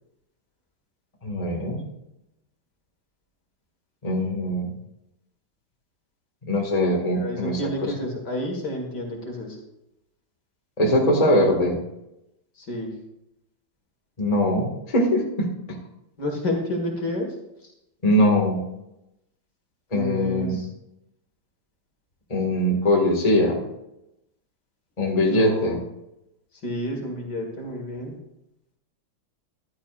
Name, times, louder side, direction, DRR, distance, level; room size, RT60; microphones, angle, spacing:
voice 1, 1.2-1.8 4.0-4.7 6.5-7.9 10.8-11.8 14.2-15.5 18.0-18.6 19.9-20.6 22.3-23.6 25.0-25.8, left 1 dB, 20° left, -1 dB, 2.0 m, -21 dB
voice 2, 7.2-9.6 12.6-12.9 16.2-17.4 19.9-20.7 25.1-25.8 26.6-28.1, left 1 dB, 55° left, 1 dB, 2.4 m, -30 dB
14.0 x 11.5 x 2.5 m, 0.87 s
omnidirectional pair, 2.2 m